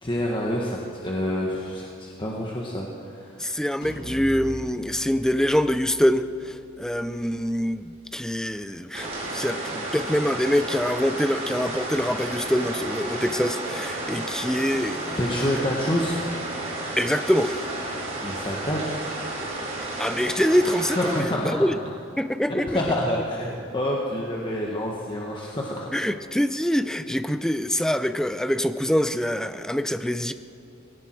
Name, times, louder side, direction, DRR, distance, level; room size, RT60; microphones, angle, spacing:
voice 1, 0.0-3.4 15.1-16.2 18.2-19.0 20.9-21.6 22.5-25.9, left 1 dB, 25° left, -2 dB, 1.4 m, -27 dB
voice 2, 3.4-15.2 17.0-17.6 20.0-21.8 22.2-22.8 25.9-30.3, equal, 5° left, 11 dB, 0.5 m, -25 dB
sound 1, 3.8-9.5, equal, 65° left, 4.4 m, -43 dB
sound 2, 8.9-21.2, right 2 dB, 35° right, 3.3 m, -32 dB
18.5 x 17.0 x 4.6 m, 2.8 s
head